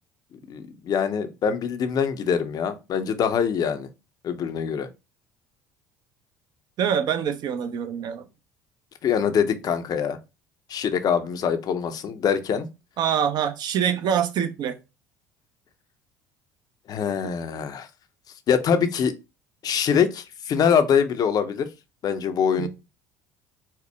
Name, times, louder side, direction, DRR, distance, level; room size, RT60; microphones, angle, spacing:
voice 1, 0.5-3.9 4.2-4.9 9.0-10.2 10.7-12.7 16.9-17.9 18.5-19.1 19.6-21.7 22.0-22.7, left 7 dB, 45° left, 0.6 m, -24 dB
voice 2, 6.8-8.2 13.0-14.8 22.6-22.7, right 8 dB, 50° right, 0.6 m, -25 dB
4.4 x 2.1 x 3.3 m
hypercardioid pair, 60°, 9 cm